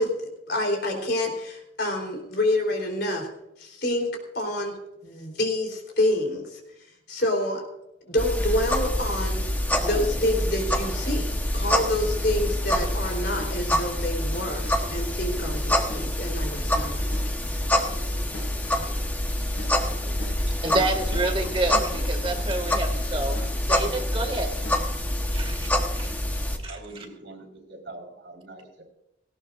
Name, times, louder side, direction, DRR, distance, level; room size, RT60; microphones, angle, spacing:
voice 1, 0.0-3.3 3.6-4.8 5.0-6.6 7.1-7.6 8.0-17.1, left 1 dB, 60° left, 2 dB, 3.7 m, -28 dB
sound 1, 8.2-26.6, left 1 dB, 10° left, 1.1 m, -26 dB
sound 2, 10.9-11.0 11.6-25.0, left 1 dB, 75° left, 6.0 m, -45 dB
voice 2, 20.6-23.4 23.7-24.5 25.3-25.7 26.0-26.1 26.6-26.8, right 2 dB, 30° right, 4 dB, 2.1 m, -28 dB
voice 3, 22.2-22.5 26.4-28.8, right 2 dB, 70° right, 2 dB, 4.2 m, -44 dB
18.0 x 17.0 x 2.6 m, 0.89 s
head